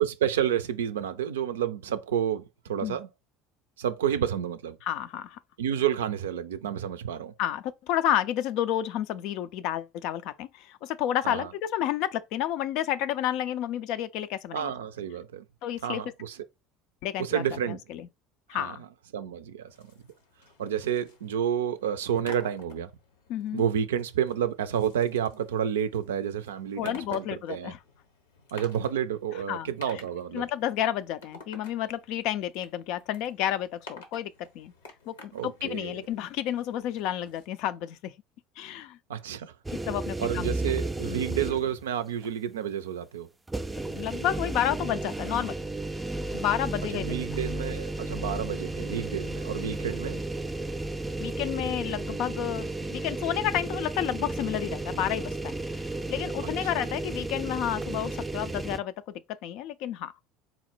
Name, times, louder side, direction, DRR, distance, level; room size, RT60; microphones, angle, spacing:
voice 1, 0.0-3.1 3.8-4.8 5.6-7.3 11.2-11.5 14.5-15.4 15.8-16.4 17.2-17.8 18.6-18.8 19.1-19.9 20.6-22.9 23.5-27.7 28.5-30.5 35.3-35.9 39.1-39.5 40.2-43.3 46.9-50.2 56.6-56.8, right 9 dB, 85° right, 0.4 m, -30 dB
voice 2, 4.8-5.4 7.4-14.7 15.6-16.0 17.0-18.1 18.5-18.8 23.3-23.6 26.8-27.8 29.5-29.7 30.3-34.7 35.1-38.1 38.6-39.0 39.7-40.5 41.1-41.2 43.9-45.6 46.3-47.1 51.2-58.9 59.4-60.1, left 11 dB, 65° left, 0.4 m, -31 dB
sound 1, 19.7-37.5, left 3 dB, 85° left, 0.9 m, -52 dB
sound 2, 39.6-41.8 42.2-42.3 43.5-58.8, right 2 dB, 15° right, 0.4 m, -33 dB
4.0 x 2.1 x 4.2 m
hypercardioid pair, 70°, 0 cm